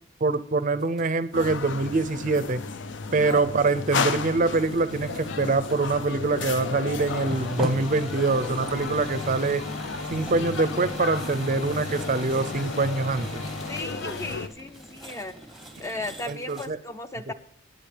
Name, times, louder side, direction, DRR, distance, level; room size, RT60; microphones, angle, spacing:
voice 1, 0.2-2.6 3.1-9.6 10.1-13.3 16.3-16.8 17.3-17.4, right 3 dB, 40° right, 13 dB, 0.5 m, -24 dB
sound 1, 0.8-1.7 2.1-2.6 3.2-6.8 7.1-8.6 9.1-9.6 9.9-14.5 14.7-16.7, right 1 dB, ahead, 0.9 m, -43 dB
sound 2, 1.3-14.5, left 4 dB, 60° left, 0.5 m, -33 dB
sound 3, 3.9-16.2, left 1 dB, 35° left, 2.7 m, -40 dB
voice 2, 13.7-15.4 15.8-17.3, left 2 dB, 15° left, 10 dB, 0.5 m, -36 dB
18.0 x 9.0 x 3.3 m, 0.69 s
head